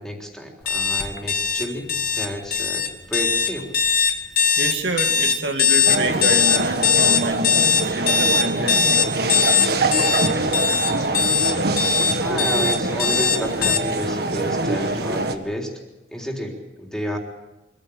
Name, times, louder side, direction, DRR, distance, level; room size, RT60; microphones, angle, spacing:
voice 1, 0.0-3.7 12.2-15.7 16.1-17.2, equal, 5° left, 0 dB, 3.7 m, -31 dB
sound 1, 0.7-13.8, left 7 dB, 55° left, 2.0 m, -20 dB
voice 2, 4.3-9.3 10.6-11.0, right 2 dB, 80° right, 4 dB, 2.3 m, -29 dB
sound 2, 5.9-15.4, right 2 dB, 60° right, 1.7 m, -24 dB
25.0 x 15.5 x 8.7 m, 1.0 s
head